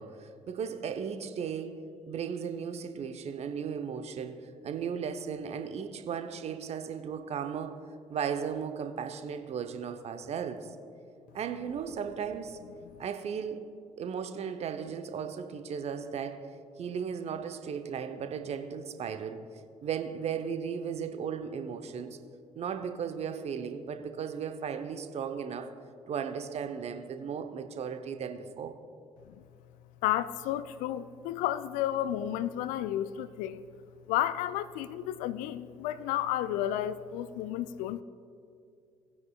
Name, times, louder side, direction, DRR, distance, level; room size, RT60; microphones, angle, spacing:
voice 1, 0.0-7.8 8.1-10.7 11.3-12.6 13.0-13.7 14.0-16.5 16.8-19.4 19.8-22.2 22.5-25.7 26.1-28.7, right 7 dB, 40° right, 0.8 m, -36 dB
voice 2, 30.0-33.6 34.1-38.0, left 12 dB, 55° left, 0.4 m, -32 dB
19.0 x 9.6 x 2.3 m
figure-of-eight pair, 50°, 16 cm